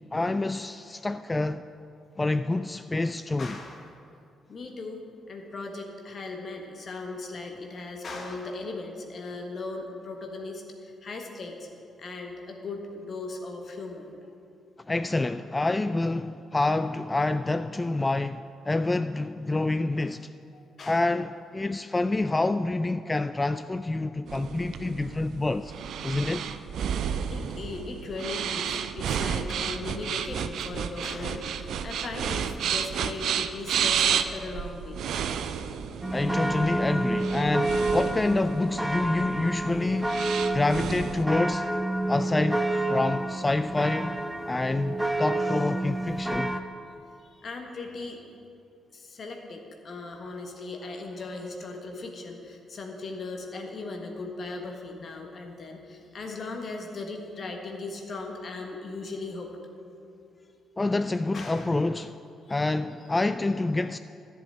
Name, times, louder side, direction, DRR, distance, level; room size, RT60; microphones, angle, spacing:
voice 1, 0.1-1.6 2.2-3.6 14.9-20.3 20.9-25.7 26.0-26.5 36.1-40.2 40.5-41.6 42.1-44.2 44.5-46.5 60.8-62.1 62.5-64.0, left 2 dB, 20° left, 0.3 m, -27 dB
voice 2, 3.4-3.9 4.5-5.0 5.3-11.7 12.0-14.1 20.5-21.0 27.3-35.0 40.4-40.6 47.2-48.2 48.9-59.5 61.3-61.7 62.5-62.6, left 3 dB, 45° left, 1.4 m, -38 dB
sound 1, 24.3-41.2, right 8 dB, 60° right, 0.5 m, -32 dB
sound 2, 36.0-46.6, right 1 dB, 5° right, 0.9 m, -29 dB
11.0 x 7.0 x 8.4 m
figure-of-eight pair, 40°, 0 cm